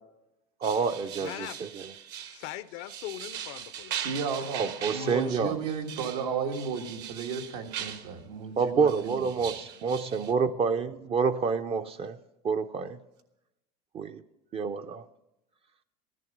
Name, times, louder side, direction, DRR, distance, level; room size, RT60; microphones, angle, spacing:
voice 1, 0.6-1.5 1.7-1.8 4.6-5.6 8.6-12.2 12.4-13.0 13.9-14.2 14.5-15.0, right 5 dB, 30° right, 8 dB, 0.5 m, -28 dB
sound 1, 0.6-8.1 8.9-10.3, right 9 dB, 60° right, 1.0 m, -40 dB
voice 2, 1.2-1.6 2.3-4.0 5.0-5.4, left 14 dB, 65° left, 14 dB, 0.6 m, -40 dB
voice 3, 4.0-9.2, right 6 dB, 85° right, 4 dB, 1.6 m, -33 dB
14.0 x 11.0 x 5.2 m, 0.93 s
supercardioid pair, 125°, 20 cm